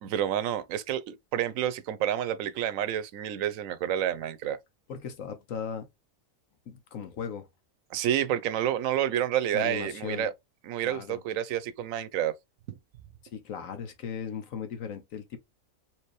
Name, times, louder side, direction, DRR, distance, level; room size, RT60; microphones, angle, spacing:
voice 1, 0.0-4.6 7.9-10.3 10.6-12.3, right 11 dB, 85° right, 1.0 m, -29 dB
voice 2, 4.9-5.9 6.7-7.5 9.5-10.3 10.8-11.2 13.3-15.4, left 7 dB, 85° left, 1.3 m, -37 dB
4.6 x 2.9 x 3.0 m
omnidirectional pair, 1.4 m